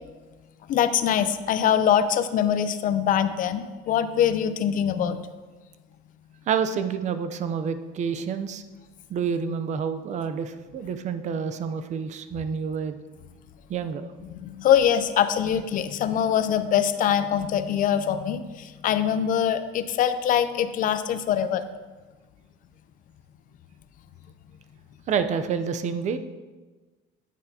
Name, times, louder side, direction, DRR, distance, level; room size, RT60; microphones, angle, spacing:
voice 1, 0.7-5.2 14.4-21.6, left 9 dB, 45° left, 11 dB, 0.6 m, -23 dB
voice 2, 6.5-8.6 9.1-13.0 13.7-14.1 25.1-26.2, right 6 dB, 40° right, 10 dB, 0.6 m, -28 dB
9.4 x 9.1 x 2.8 m, 1.3 s
cardioid pair, 150°, 19 cm